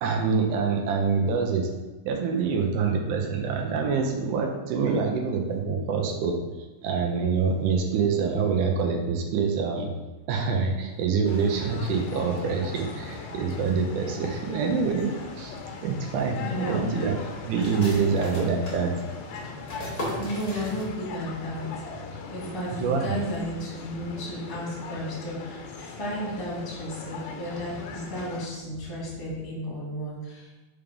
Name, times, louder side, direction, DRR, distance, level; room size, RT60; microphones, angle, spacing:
voice 1, 0.0-1.7 2.1-9.9 10.3-17.2 17.4-18.9 22.7-23.1, right 5 dB, 75° right, 3 dB, 1.9 m, -26 dB
sound 1, 11.2-28.5, left 4 dB, 75° left, 2.2 m, -39 dB
voice 2, 16.4-16.9 17.9-18.0 20.2-22.0 22.3-30.5, equal, 10° left, -7 dB, 1.0 m, -33 dB
sound 2, 17.6-21.3 21.5-21.6 22.1-22.5, left 1 dB, 50° left, 1.0 m, -36 dB
5.8 x 3.4 x 5.2 m, 1.1 s
omnidirectional pair, 4.1 m